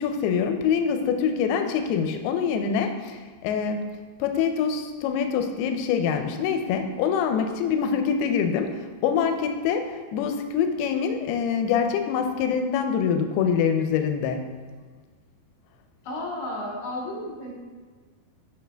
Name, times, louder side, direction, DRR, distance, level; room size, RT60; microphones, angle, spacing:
voice 1, 0.0-3.9 4.2-14.5, left 7 dB, 90° left, 6 dB, 2.6 m, -25 dB
voice 2, 16.0-17.6, left 1 dB, 50° left, -5 dB, 2.5 m, -33 dB
8.8 x 6.0 x 3.4 m, 1.5 s
omnidirectional pair, 4.5 m